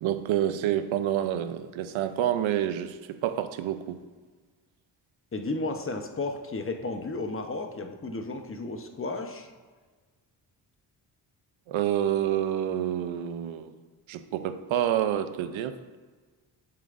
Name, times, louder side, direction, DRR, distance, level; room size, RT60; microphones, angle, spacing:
voice 1, 0.0-4.0 11.7-13.7 14.1-15.8, right 11 dB, 85° right, 10 dB, 0.7 m, -28 dB
voice 2, 5.3-9.5, left 3 dB, 30° left, 5 dB, 0.9 m, -33 dB
8.8 x 7.5 x 2.5 m, 1.4 s
cardioid pair, 80°, 46 cm